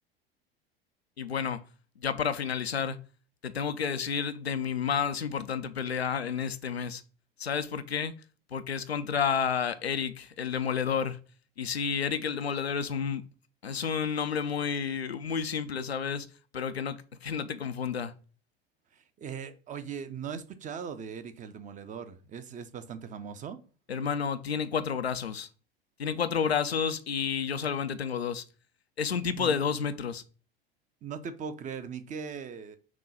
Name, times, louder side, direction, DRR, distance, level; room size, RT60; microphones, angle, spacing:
voice 1, 1.2-1.6 2.0-3.0 3.4-7.0 7.4-8.1 8.5-11.2 11.6-13.2 13.6-16.3 16.5-18.1 23.9-25.5 26.0-28.4 29.0-30.2, left 7 dB, 90° left, 0.5 m, -30 dB
voice 2, 18.9-23.6 29.4-29.6 31.0-32.8, right 6 dB, 25° right, 0.6 m, -39 dB
6.1 x 2.2 x 3.9 m
figure-of-eight pair, 80°, 30 cm